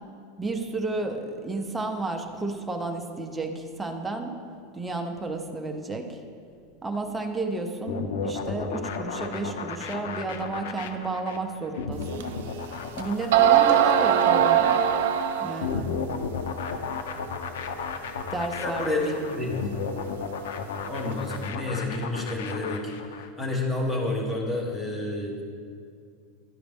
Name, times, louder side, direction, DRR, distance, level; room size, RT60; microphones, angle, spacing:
voice 1, 0.4-4.3 4.7-6.2 6.8-12.3 12.6-14.8 15.4-16.0 18.3-19.0, right 3 dB, 5° right, 2 dB, 0.5 m, -32 dB
sound 1, 7.9-23.3, left 5 dB, 90° left, 0.6 m, -34 dB
sound 2, 12.2-12.3 13.0-13.1 13.3-15.8, right 10 dB, 85° right, 0.5 m, -20 dB
voice 2, 18.6-19.5 20.9-22.9 23.4-25.4, left 2 dB, 10° left, 0 dB, 1.0 m, -29 dB
11.0 x 5.0 x 3.4 m, 2.3 s
supercardioid pair, 165°, 0 cm